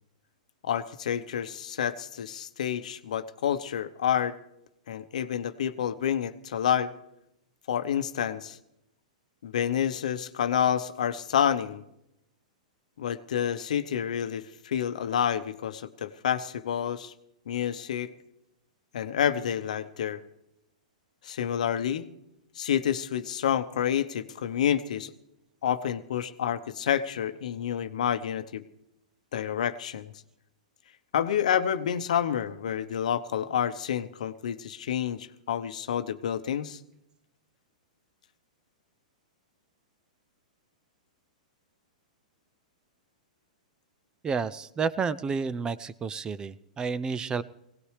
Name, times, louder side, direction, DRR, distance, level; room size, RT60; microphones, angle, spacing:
voice 1, 0.6-4.4 4.9-6.9 7.7-8.6 9.4-11.8 13.0-17.1 17.5-18.1 18.9-20.2 21.2-22.1 22.6-25.1 25.6-28.6 29.3-30.1 31.1-36.8, left 9 dB, 70° left, 10 dB, 0.8 m, -29 dB
voice 2, 44.2-47.4, right 5 dB, 20° right, 17 dB, 0.5 m, -30 dB
21.0 x 17.5 x 3.3 m, 0.84 s
hypercardioid pair, 115°, 4 cm